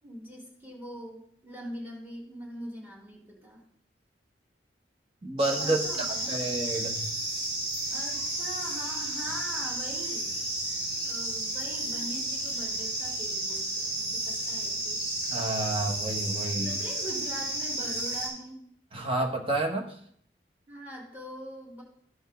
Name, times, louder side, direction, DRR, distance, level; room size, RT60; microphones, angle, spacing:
voice 1, 0.0-3.6 5.6-6.3 7.9-10.4 11.0-15.0 16.5-18.6 20.7-21.8, equal, 10° right, -4 dB, 3.1 m, -42 dB
voice 2, 5.2-7.0 15.3-16.7 18.9-19.9, right 2 dB, 30° right, 2 dB, 1.4 m, -30 dB
sound 1, 5.4-18.3, right 1 dB, 65° right, 4.7 m, -32 dB
14.0 x 5.4 x 3.8 m, 0.64 s
head